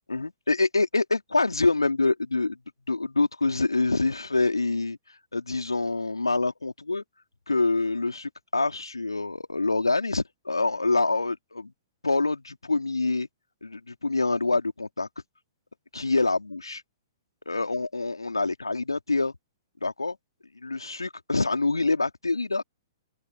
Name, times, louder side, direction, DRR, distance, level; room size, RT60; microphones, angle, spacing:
voice 1, 0.1-2.6 2.9-5.0 5.3-7.0 7.5-11.7 12.0-13.3 13.6-15.1 15.9-16.8 17.5-19.3 19.8-20.2 20.6-22.6, left 3 dB, 85° left, 2.7 m, -26 dB
open air
figure-of-eight pair, 115°, 2 cm